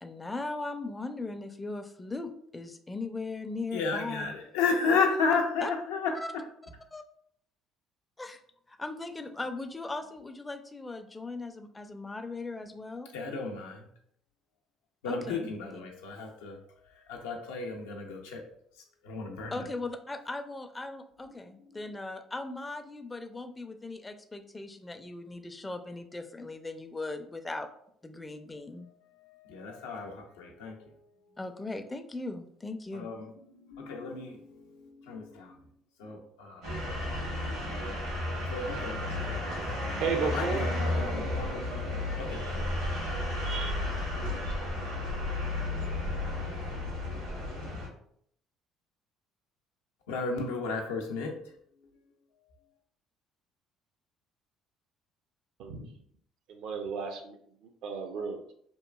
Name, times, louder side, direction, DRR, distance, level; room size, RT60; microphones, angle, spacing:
voice 1, 0.0-4.3 5.6-5.7 6.1-6.3 6.6-7.0 8.2-8.4 8.7-13.1 15.1-15.9 19.5-27.7 28.0-28.9 31.4-33.1, left 3 dB, 20° left, 7 dB, 0.4 m, -38 dB
voice 2, 3.7-6.1 13.1-13.8 15.0-16.6 17.1-18.4 19.0-19.6 29.5-30.7 32.9-33.2 33.7-34.4 35.1-35.5 36.0-36.6 38.5-39.0 40.2-41.6 42.2-42.8 50.1-51.3, left 4 dB, 85° left, 1 dB, 0.5 m, -32 dB
sound 1, 36.6-47.9, left 1 dB, 85° right, 1.3 m, -33 dB
voice 3, 40.0-40.6 55.6-55.9 56.5-58.5, right 5 dB, 70° right, 5 dB, 0.5 m, -33 dB
2.9 x 2.4 x 2.2 m, 0.66 s
hypercardioid pair, 65°, 0 cm